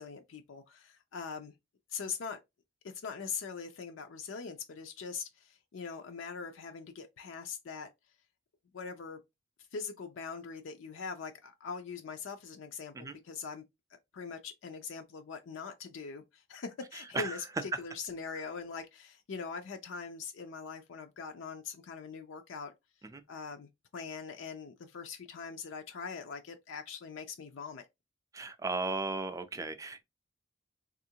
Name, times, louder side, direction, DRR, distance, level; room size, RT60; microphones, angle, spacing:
voice 1, 0.0-1.5 1.9-2.4 2.8-7.9 8.7-9.2 9.7-13.7 13.9-22.7 23.3-27.8, left 5 dB, 80° left, 0.4 m, -42 dB
voice 2, 28.3-30.0, right 3 dB, 15° right, 0.4 m, -35 dB
3.5 x 2.4 x 2.7 m
head